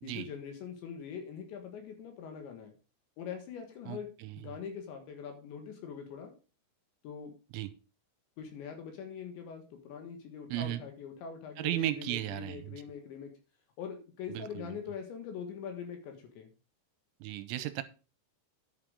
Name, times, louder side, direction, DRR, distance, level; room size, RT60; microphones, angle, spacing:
voice 1, 0.0-2.7 3.2-4.1 4.4-6.3 7.0-7.3 8.4-13.3 13.8-16.5, left 7 dB, 70° left, 3.7 m, -43 dB
voice 2, 3.9-4.4 7.5-7.7 10.5-10.8 11.6-12.8 14.3-14.8 17.2-17.8, right 15 dB, 80° right, 3.0 m, -35 dB
10.5 x 8.7 x 3.7 m
omnidirectional pair, 5.7 m